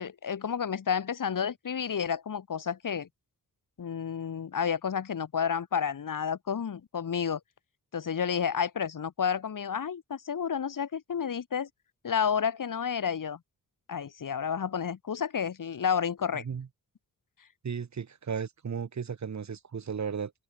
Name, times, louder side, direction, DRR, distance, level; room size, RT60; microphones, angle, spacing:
voice 1, 0.0-3.1 3.8-7.4 7.9-11.7 12.0-13.4 13.9-16.4, left 7 dB, 70° left, 2.8 m, -30 dB
voice 2, 16.3-16.7 17.6-20.3, right 6 dB, 55° right, 1.9 m, -35 dB
wide cardioid pair, 135°, 34 cm